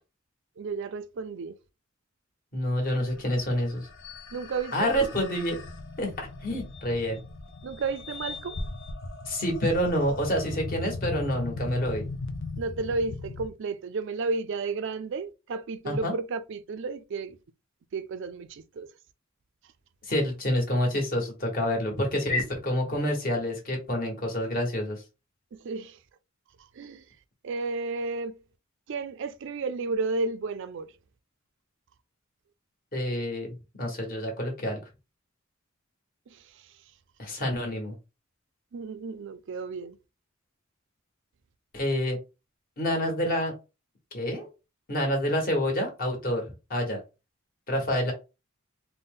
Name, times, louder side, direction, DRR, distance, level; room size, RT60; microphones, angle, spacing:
voice 1, 0.6-1.5 4.3-5.1 7.6-8.6 12.6-17.4 17.9-18.9 25.5-26.0 26.8-27.0 27.4-28.3 28.9-30.9 36.3-36.4 38.7-40.0, right 4 dB, 60° right, 0.4 m, -32 dB
voice 2, 2.5-3.9 4.7-5.6 6.0-7.2 9.3-12.0 15.8-16.1 20.0-25.0 32.9-34.8 37.2-37.9 41.7-42.2 42.8-43.5 44.1-44.5 44.9-47.0 47.7-48.1, equal, 45° left, 1.3 m, -28 dB
sound 1, 2.9-13.5, left 2 dB, 65° left, 0.6 m, -38 dB
3.9 x 2.1 x 3.6 m
head